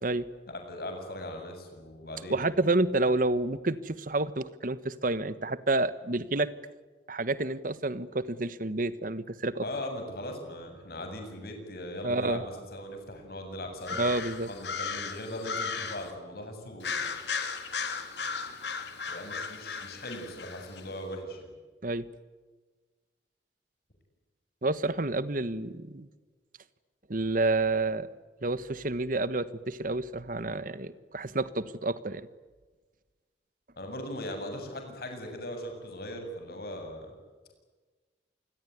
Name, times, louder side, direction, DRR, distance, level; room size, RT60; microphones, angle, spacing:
voice 1, 0.5-2.5 9.6-14.0 14.5-17.2 19.1-21.5 33.8-37.1, left 1 dB, 60° left, 5 dB, 7.9 m, -39 dB
voice 2, 2.3-6.5 7.1-9.6 12.0-12.4 13.9-14.5 21.8-22.1 24.6-26.1 27.1-28.1 28.4-32.3, right 2 dB, 50° right, 15 dB, 1.3 m, -29 dB
sound 1, 13.8-16.1 16.8-20.8, left 5 dB, 75° left, 3.4 m, -36 dB
27.5 x 21.0 x 9.5 m, 1.3 s
head